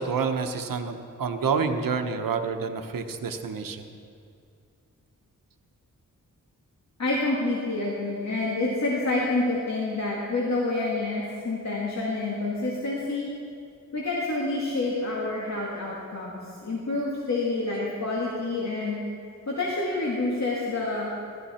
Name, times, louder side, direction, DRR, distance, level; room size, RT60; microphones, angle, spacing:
voice 1, 0.0-3.9, right 5 dB, 80° right, 7 dB, 1.0 m, -28 dB
voice 2, 7.0-13.3 13.9-19.0 19.5-21.1, left 2 dB, 55° left, -4 dB, 2.1 m, -28 dB
16.0 x 13.5 x 4.3 m, 2.4 s
wide cardioid pair, 85°, 33 cm